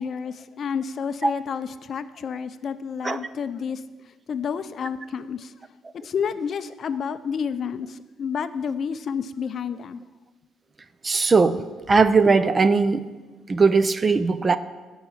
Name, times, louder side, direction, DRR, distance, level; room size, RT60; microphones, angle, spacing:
voice 1, 0.0-3.8 4.3-5.5 6.0-10.0, left 6 dB, 45° left, 0.5 m, -30 dB
voice 2, 11.0-11.6 11.9-13.0 13.5-14.6, right 4 dB, 25° right, 0.5 m, -19 dB
12.0 x 5.5 x 8.5 m
cardioid pair, 135°, 0 cm